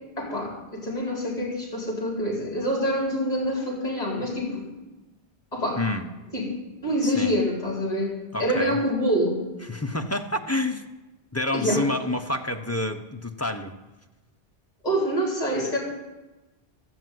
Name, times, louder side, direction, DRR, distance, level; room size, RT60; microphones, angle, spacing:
voice 1, 0.2-4.6 5.5-5.8 6.3-6.5 6.8-9.4 11.5-11.8 14.8-15.8, equal, 40° left, -3 dB, 4.5 m, -26 dB
voice 2, 5.8-6.1 7.0-7.3 8.3-8.8 9.6-10.8 11.3-13.7, left 1 dB, 15° left, 5 dB, 0.8 m, -28 dB
14.0 x 6.2 x 9.4 m, 1.1 s
omnidirectional pair, 1.1 m